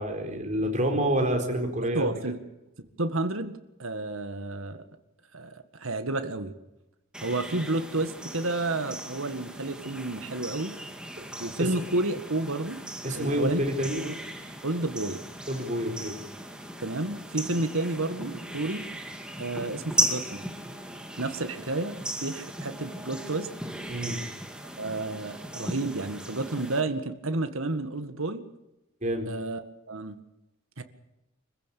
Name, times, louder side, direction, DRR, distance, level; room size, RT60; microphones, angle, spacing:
voice 1, 0.0-2.1 11.2-11.3 13.0-14.0 15.5-16.1 23.9-24.2 29.0-29.3, equal, 35° right, 3 dB, 4.3 m, -28 dB
voice 2, 1.9-2.4 3.0-4.8 5.3-6.5 7.2-10.8 11.4-12.8 13.1-13.6 14.0-14.1 14.6-15.2 16.8-18.9 19.4-20.5 21.2-23.5 24.8-28.4 29.3-30.2 30.8-30.9, right 2 dB, 70° right, 9 dB, 1.9 m, -31 dB
sound 1, 7.1-26.8, right 1 dB, 5° right, 2.2 m, -37 dB
26.0 x 15.5 x 8.5 m, 0.95 s
head